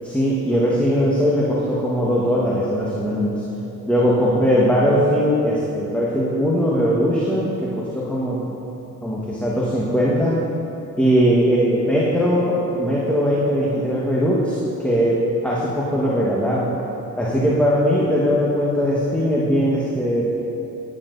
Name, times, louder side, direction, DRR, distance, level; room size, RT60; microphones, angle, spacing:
voice 1, 0.0-3.4 3.9-8.4 9.0-10.4 11.0-16.7 17.2-20.2, equal, 5° left, -6 dB, 1.3 m, -20 dB
11.5 x 8.6 x 2.6 m, 2.9 s
supercardioid pair, 65°, 39 cm